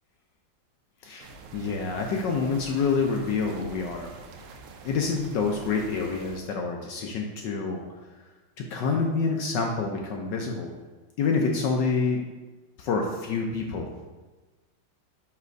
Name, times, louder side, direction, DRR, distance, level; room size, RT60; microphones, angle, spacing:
voice 1, 1.0-4.1 4.8-7.8 8.6-10.7 11.2-12.3 12.8-14.0, left 4 dB, 70° left, 1 dB, 1.1 m, -27 dB
sound 1, 1.2-6.4, right 3 dB, 85° right, 1.5 m, -46 dB
5.7 x 3.3 x 5.1 m, 1.2 s
omnidirectional pair, 2.3 m